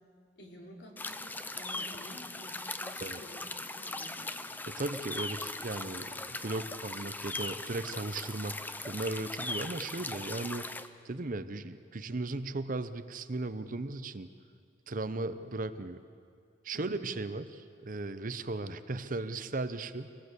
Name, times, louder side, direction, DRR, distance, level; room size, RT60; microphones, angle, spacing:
voice 1, 0.4-4.3 16.7-17.0, equal, 60° left, 0 dB, 3.7 m, -51 dB
sound 1, 1.0-10.9, left 2 dB, 10° left, 0.6 m, -39 dB
voice 2, 4.7-8.5 8.8-10.6 11.0-14.3 14.9-16.0 16.6-20.1, right 2 dB, 45° right, 12 dB, 0.7 m, -36 dB
24.0 x 18.5 x 8.3 m, 2.3 s
head